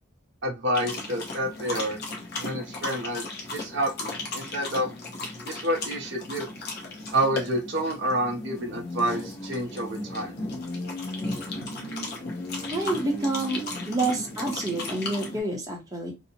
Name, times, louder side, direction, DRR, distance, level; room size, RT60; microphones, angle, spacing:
voice 1, 0.4-2.0 2.4-3.2 3.5-4.9 5.4-6.5 7.1-10.3, right 1 dB, 55° right, 2 dB, 0.5 m, -28 dB
sound 1, 0.7-15.4, left 2 dB, 45° left, 0.7 m, -35 dB
voice 2, 12.7-13.6 13.9-16.1, right 2 dB, 15° right, -1 dB, 0.6 m, -28 dB
2.6 x 2.0 x 2.6 m, 0.25 s
head